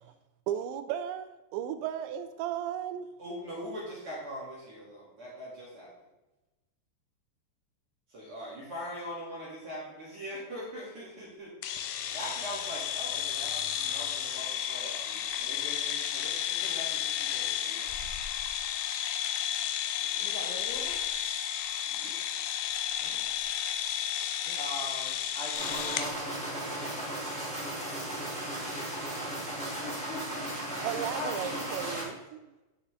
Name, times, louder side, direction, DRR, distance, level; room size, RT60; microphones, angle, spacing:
voice 1, 0.5-3.1 30.8-32.5, right 10 dB, 85° right, 10 dB, 2.8 m, -35 dB
voice 2, 3.2-5.9 8.1-17.9 20.0-20.3 21.9-22.1 24.5-27.5, equal, 45° right, -7 dB, 1.9 m, -42 dB
sound 1, 11.6-26.1, left 10 dB, 85° left, 2.2 m, -32 dB
voice 3, 20.2-21.0 23.0-23.2 24.5-24.6 28.5-29.3 29.6-30.7 31.0-31.6, left 3 dB, 70° left, -1 dB, 2.8 m, -43 dB
sound 2, 25.5-32.0, right 1 dB, ahead, 1.7 m, -36 dB
9.8 x 5.6 x 3.7 m, 1.0 s
omnidirectional pair, 5.2 m